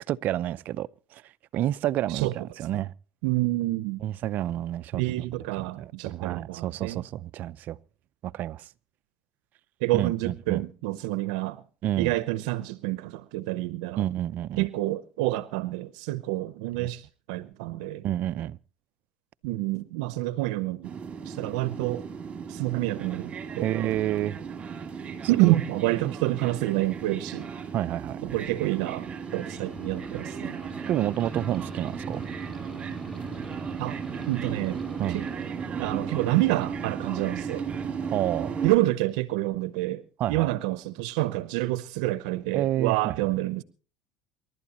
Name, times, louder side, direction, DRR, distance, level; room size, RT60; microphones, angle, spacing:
voice 1, 0.1-1.2 1.5-2.9 4.0-5.0 5.6-7.8 8.2-8.7 9.9-10.6 11.8-12.2 14.0-14.7 16.8-16.9 18.0-18.6 23.6-24.4 25.5-25.6 26.0-26.1 27.7-28.2 30.9-32.2 35.0-35.2 38.1-38.5 40.2-40.5 42.5-43.1, right 12 dB, 50° right, 0.6 m, -29 dB
voice 2, 2.1-2.5 3.2-4.0 4.9-7.0 9.8-11.6 12.0-14.1 14.6-18.1 19.4-20.9 21.2-22.1 22.5-23.7 25.3-27.5 28.2-30.6 33.8-34.0 34.3-34.8 35.1-35.3 35.8-37.7 38.6-43.6, right 18 dB, 85° right, 0.8 m, -28 dB
sound 1, 20.8-38.8, right 6 dB, 30° right, 2.5 m, -35 dB
sound 2, 28.7-38.0, equal, 5° left, 3.9 m, -49 dB
28.5 x 12.5 x 3.0 m
cardioid pair, 120°, 4 cm